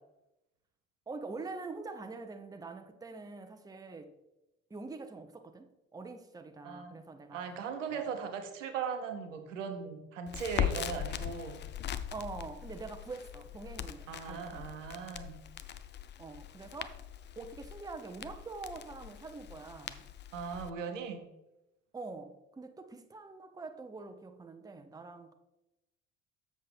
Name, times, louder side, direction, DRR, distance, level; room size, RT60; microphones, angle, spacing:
voice 1, 1.1-4.1 4.7-7.4 7.9-8.1 12.1-14.8 16.2-17.0 17.4-20.1 21.9-25.3, right 3 dB, 10° right, 0.7 m, -45 dB
voice 2, 6.6-7.0 7.3-11.6 14.1-15.4 20.3-21.2, right 6 dB, 80° right, 0.9 m, -38 dB
Crackle, 10.3-20.7, left 10 dB, 30° left, 0.5 m, -40 dB
7.4 x 6.2 x 3.5 m
figure-of-eight pair, 55°, 37 cm